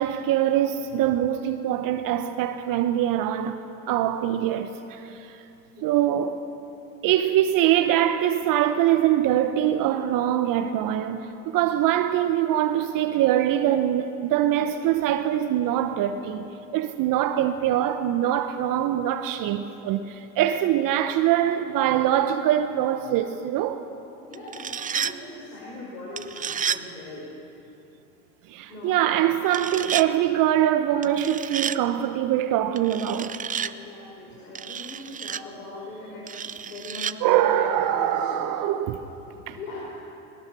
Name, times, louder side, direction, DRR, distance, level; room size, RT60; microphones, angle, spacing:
voice 1, 0.0-3.6 3.9-5.4 5.8-6.5 7.0-23.9 28.5-33.4 37.2-39.1 39.5-39.6, right 11 dB, 50° right, 1.0 m, -23 dB
voice 2, 24.2-27.3 28.7-29.1 33.6-38.4 39.6-39.9, left 2 dB, 85° left, 5.2 m, -40 dB
sound 1, 24.3-25.1 26.2-26.8 29.5-30.1 31.0-31.8 32.8-33.7 34.5-35.4 36.3-37.1, right 8 dB, 20° right, 0.5 m, -31 dB
22.0 x 19.5 x 6.1 m
hypercardioid pair, 90°, 43 cm